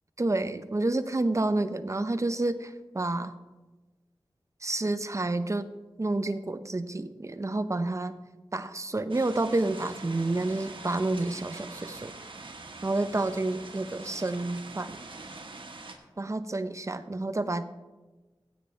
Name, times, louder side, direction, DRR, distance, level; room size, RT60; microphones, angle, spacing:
voice 1, 0.2-3.3 4.6-5.7 6.0-8.2 8.5-12.1 12.8-15.0 16.2-17.6, right 2 dB, 35° right, 11 dB, 0.7 m, -29 dB
sound 1, 9.1-15.9, right 3 dB, 65° right, 1.4 m, -44 dB
15.5 x 8.4 x 3.4 m, 1.2 s
cardioid pair, 40°, 9 cm